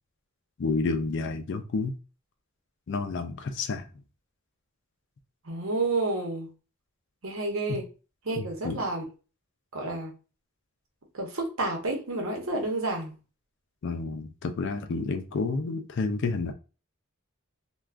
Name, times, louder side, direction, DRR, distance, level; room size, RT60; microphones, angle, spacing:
voice 1, 0.6-2.0 2.9-3.8 7.7-7.8 8.4-8.8 13.8-16.5, left 3 dB, 60° left, 0.4 m, -30 dB
voice 2, 5.4-6.5 7.2-7.9 8.2-9.0 9.7-10.1 11.1-13.1, right 2 dB, 75° right, 0.9 m, -30 dB
2.4 x 2.3 x 3.3 m
head